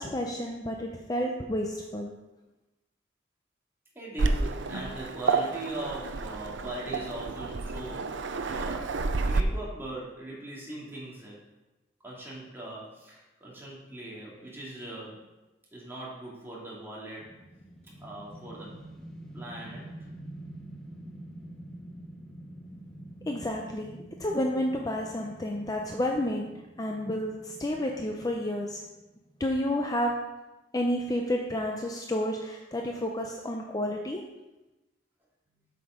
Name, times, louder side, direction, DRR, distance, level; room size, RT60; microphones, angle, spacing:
voice 1, 0.0-2.1 23.3-26.5 26.8-28.8 29.4-30.1 30.7-34.2, left 1 dB, 20° left, 1 dB, 0.6 m, -30 dB
voice 2, 3.9-8.2 8.5-11.4 12.0-15.2 15.7-17.3 18.0-18.8 19.3-19.8, right 1 dB, 15° right, -5 dB, 2.3 m, -40 dB
Waves surf, 4.2-9.4, right 3 dB, 80° right, 0.6 m, -30 dB
sound 1, 17.2-29.4, right 1 dB, 5° left, 0.9 m, -47 dB
8.0 x 5.9 x 5.0 m, 1.1 s
head